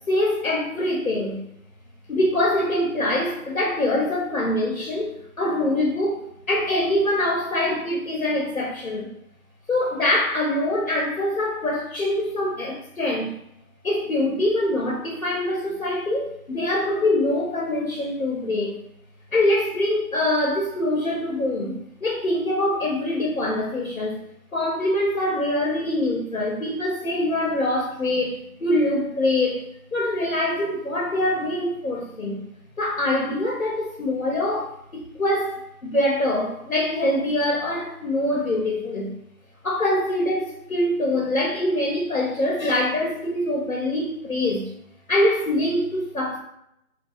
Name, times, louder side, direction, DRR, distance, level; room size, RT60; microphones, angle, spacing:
voice 1, 0.1-1.4 2.1-9.1 9.7-13.3 13.8-18.7 19.3-24.2 24.5-32.4 32.8-39.1 39.6-44.7 45.1-46.4, left 1 dB, 65° left, -3 dB, 0.6 m, -24 dB
2.4 x 2.2 x 2.3 m, 0.75 s
figure-of-eight pair, 165°, 45 cm